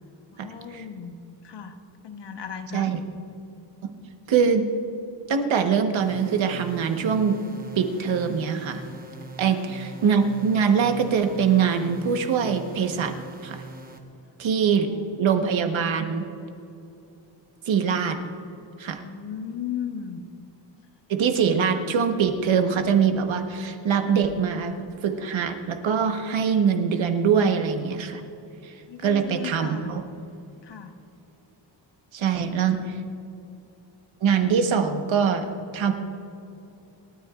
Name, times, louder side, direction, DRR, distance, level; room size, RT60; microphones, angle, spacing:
voice 1, 0.3-1.2 1.4-2.9 9.5-9.6 15.2-15.4 19.0-20.2 28.9-29.9 30.6-31.0 32.3-33.2, left 7 dB, 65° left, 6 dB, 1.2 m, -36 dB
voice 2, 4.3-4.7 5.3-7.4 7.7-8.8 9.4-13.1 13.4-13.6 14.4-14.9 15.2-16.3 17.7-18.2 18.8-19.0 21.1-24.8 25.0-28.2 28.6-28.7 29.0-30.0 32.1-32.8 34.2-35.9, right 6 dB, 80° right, 5 dB, 1.3 m, -23 dB
sound 1, 6.0-14.0, right 2 dB, 20° right, 1.1 m, -42 dB
28.0 x 13.0 x 2.5 m, 2.7 s
wide cardioid pair, 145°, 46 cm